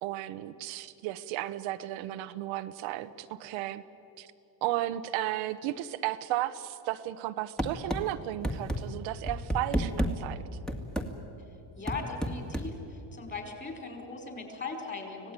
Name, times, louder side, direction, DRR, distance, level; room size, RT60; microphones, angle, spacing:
voice 1, 0.0-3.8 4.2-4.3 4.6-10.4, right 14 dB, 75° right, 10 dB, 1.1 m, -34 dB
sound 1, 7.6-8.0 8.4-8.8 9.3-10.1 10.7-11.1 11.9-12.7, equal, ahead, 2.0 m, -29 dB
voice 2, 11.7-15.3, left 4 dB, 25° left, 4 dB, 5.2 m, -39 dB
25.5 x 17.5 x 9.8 m, 2.8 s
cardioid pair, 120°, 46 cm